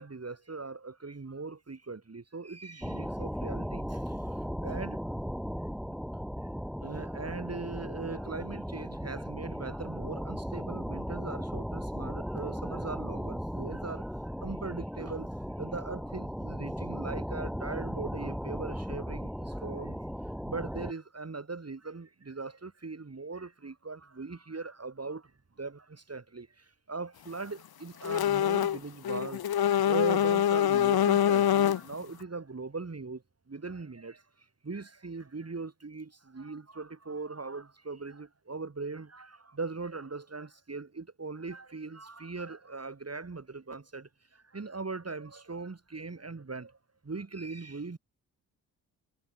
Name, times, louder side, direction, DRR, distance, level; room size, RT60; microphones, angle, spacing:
voice 1, 0.0-5.0 6.8-15.3 15.6-33.2 33.5-46.8 47.0-48.0, right 4 dB, 30° right, 5.0 m, -40 dB
sound 1, 2.8-20.9, equal, ahead, 7.2 m, -37 dB
sound 2, 28.0-28.8 29.0-31.9, left 10 dB, 50° left, 1.1 m, -25 dB
hypercardioid pair, 40°, 48 cm